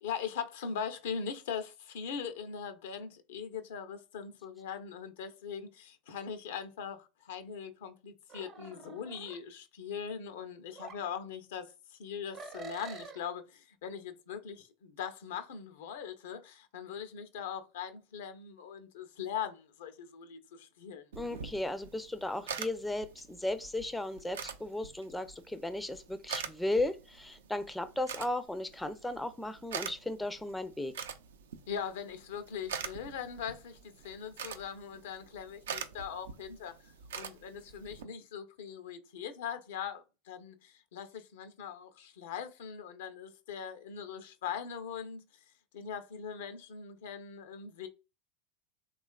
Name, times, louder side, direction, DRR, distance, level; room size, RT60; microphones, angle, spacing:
voice 1, 0.0-21.1 31.7-45.2 45.7-47.9, left 7 dB, 75° left, 0.5 m, -41 dB
sound 1, 8.3-9.4 10.7-11.0 12.3-13.2, right 4 dB, 35° right, 0.6 m, -46 dB
sound 2, 21.1-38.0, right 7 dB, 80° right, 0.3 m, -45 dB
voice 2, 21.2-30.9, left 1 dB, 5° left, 0.4 m, -35 dB
3.0 x 2.3 x 2.2 m
hypercardioid pair, 90°, 0 cm